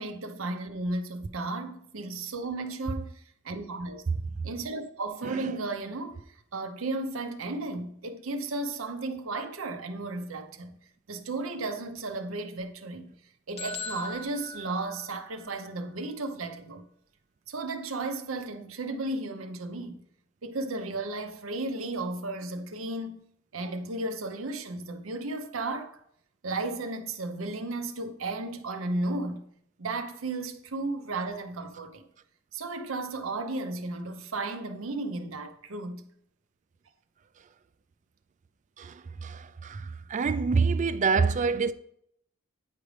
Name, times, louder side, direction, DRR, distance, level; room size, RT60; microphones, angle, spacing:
voice 1, 0.0-4.0 4.4-6.2 6.5-10.7 11.1-13.1 13.5-16.8 17.5-20.0 20.4-23.2 23.5-26.0 26.4-29.4 29.8-32.0 32.5-36.1, right 2 dB, 75° right, 0.7 m, -34 dB
voice 2, 5.2-5.5 38.8-41.7, right 5 dB, 35° right, 0.4 m, -27 dB
sound 1, 13.6-15.5, left 3 dB, 30° left, 0.6 m, -40 dB
9.1 x 5.0 x 3.3 m
head